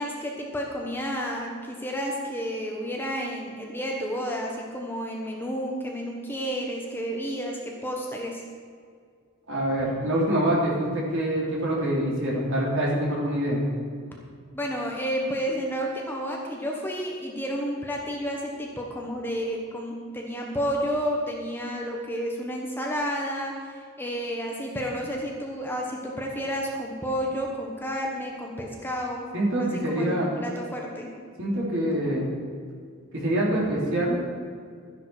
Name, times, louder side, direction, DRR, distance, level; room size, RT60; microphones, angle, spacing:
voice 1, 0.0-8.4 14.5-29.3 29.6-31.1, equal, 10° left, -1 dB, 1.2 m, -31 dB
voice 2, 9.5-13.6 29.3-30.3 31.4-32.3 33.1-34.2, right 1 dB, 60° right, -4 dB, 3.6 m, -25 dB
13.0 x 10.5 x 4.9 m, 2.1 s
head